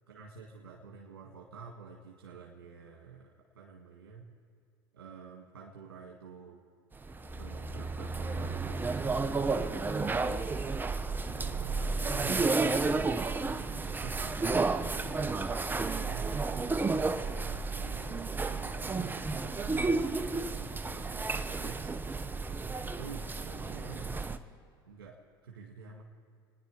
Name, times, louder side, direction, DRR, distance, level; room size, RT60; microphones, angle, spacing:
voice 1, 0.1-4.3 4.9-6.6 7.4-10.6 11.2-12.9 13.4-14.4 14.9-16.8 17.3-21.9 22.8-24.2 24.9-26.0, right 6 dB, 90° right, -1 dB, 1.9 m, -49 dB
sound 1, 6.9-24.4, right 3 dB, 15° right, 0.8 m, -32 dB
29.0 x 10.5 x 4.8 m, 2.2 s
hypercardioid pair, 85°, 12 cm